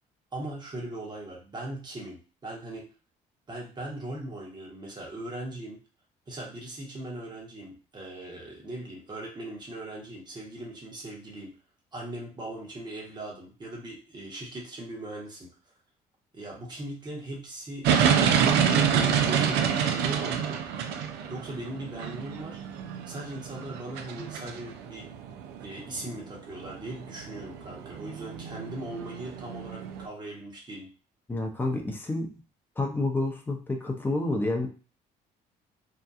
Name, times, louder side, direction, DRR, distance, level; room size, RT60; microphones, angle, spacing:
voice 1, 0.3-2.2 2.4-2.8 3.5-5.8 6.3-11.5 11.9-15.5 16.3-17.9 18.4-20.6 21.3-22.6 23.1-25.1 25.6-30.9, right 1 dB, 25° right, -2 dB, 1.0 m, -39 dB
sound 1, 17.8-30.1, right 7 dB, 85° right, 0.4 m, -28 dB
voice 2, 31.3-32.4 32.8-34.7, left 2 dB, 10° left, 1 dB, 0.6 m, -29 dB
2.7 x 2.2 x 2.3 m, 0.36 s
cardioid pair, 110°, 17 cm